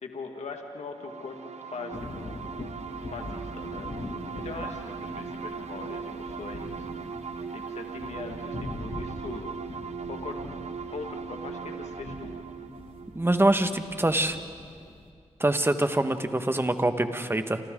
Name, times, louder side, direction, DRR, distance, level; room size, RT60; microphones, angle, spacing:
voice 1, 0.0-2.4 3.0-3.9 4.4-6.9 7.5-9.6 10.1-10.4 10.9-12.4, left 4 dB, 70° left, 3 dB, 1.9 m, -41 dB
sound 1, 1.0-14.5, right 5 dB, 70° right, 1.1 m, -39 dB
sound 2, 1.9-15.1, left 2 dB, 50° left, 2.7 m, -42 dB
voice 2, 13.1-14.4 15.4-17.6, right 1 dB, 20° right, 8 dB, 1.6 m, -24 dB
28.5 x 26.0 x 3.9 m, 2.3 s
cardioid pair, 45°, 12 cm